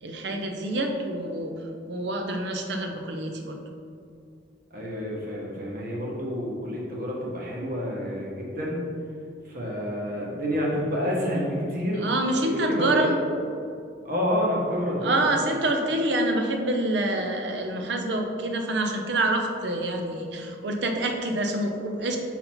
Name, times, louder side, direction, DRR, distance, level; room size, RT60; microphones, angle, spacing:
voice 1, 0.0-1.6 1.9-3.6 12.0-13.1 15.0-22.2, right 1 dB, 65° right, 4 dB, 0.6 m, -26 dB
voice 2, 4.7-8.8 9.4-12.1 12.4-13.1 14.0-15.2, equal, 50° right, -4 dB, 1.3 m, -29 dB
5.6 x 4.1 x 4.3 m, 2.4 s
head